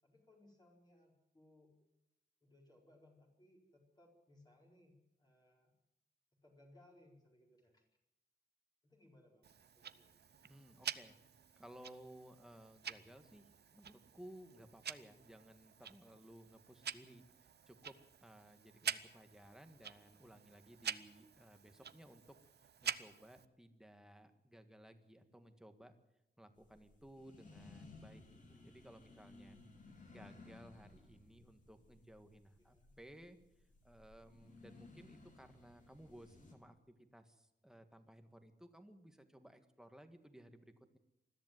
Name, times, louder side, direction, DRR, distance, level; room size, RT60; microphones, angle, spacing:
voice 1, 0.0-1.7 2.4-5.7 6.4-7.9 8.8-10.2 32.6-33.0, left 1 dB, 20° left, -1 dB, 4.7 m, -66 dB
Tick-tock, 9.4-23.4, right 7 dB, 65° right, 0.8 m, -48 dB
voice 2, 10.4-22.4 22.8-25.9 26.4-29.6 30.1-33.4 33.8-41.0, right 1 dB, 5° right, 7 dB, 1.7 m, -59 dB
sound 1, 26.6-36.5, left 3 dB, 45° left, 4.0 m, -60 dB
21.0 x 14.0 x 9.3 m, 0.87 s
wide cardioid pair, 160°, 18 cm